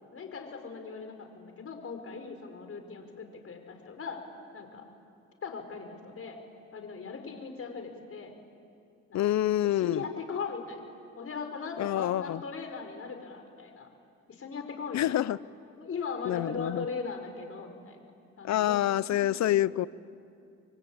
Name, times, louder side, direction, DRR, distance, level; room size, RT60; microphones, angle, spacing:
voice 1, 0.1-4.2 4.5-4.8 5.4-6.4 6.7-8.3 9.1-9.2 9.6-13.9 14.3-15.2 15.8-18.0 18.4-18.8 19.1-19.6, left 5 dB, 50° left, 5 dB, 4.9 m, -39 dB
voice 2, 9.1-10.0 11.8-12.4 14.9-15.4 16.2-16.9 18.4-19.9, left 13 dB, 65° left, 19 dB, 0.7 m, -27 dB
29.0 x 23.5 x 8.8 m, 2.5 s
cardioid pair, 90°, 30 cm